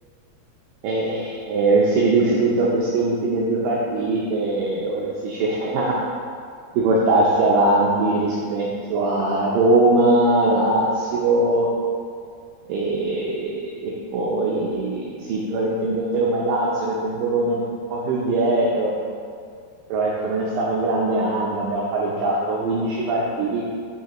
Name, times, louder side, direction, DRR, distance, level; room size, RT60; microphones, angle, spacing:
voice 1, 0.8-5.9 6.7-11.7 12.7-17.6 17.9-19.0 19.9-23.6, right 2 dB, 80° right, -4 dB, 2.1 m, -21 dB
8.2 x 5.4 x 2.9 m, 2.2 s
omnidirectional pair, 4.6 m